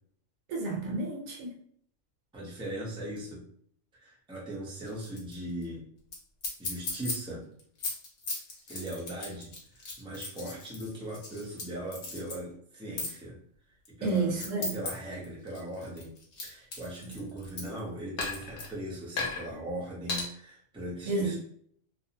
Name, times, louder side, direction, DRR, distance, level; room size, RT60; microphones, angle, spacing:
voice 1, 0.5-1.5 14.0-14.7 21.1-21.4, right 3 dB, 80° right, 0 dB, 1.1 m, -30 dB
voice 2, 2.3-3.4 3.9-5.8 6.6-7.4 8.7-9.5 9.7-13.4 13.9-16.1 16.4-21.4, right 1 dB, 5° right, -5 dB, 0.5 m, -39 dB
sound 1, 4.9-5.3 5.6-5.7 6.1-6.2 6.4-7.1 7.6-11.6 11.9-12.4 13.0-13.1 13.8-14.9 15.2-17.8 18.2-18.7 19.2-19.4 20.1-20.2, left 3 dB, 60° left, 1.0 m, -36 dB
2.6 x 2.0 x 2.7 m, 0.64 s
omnidirectional pair, 1.4 m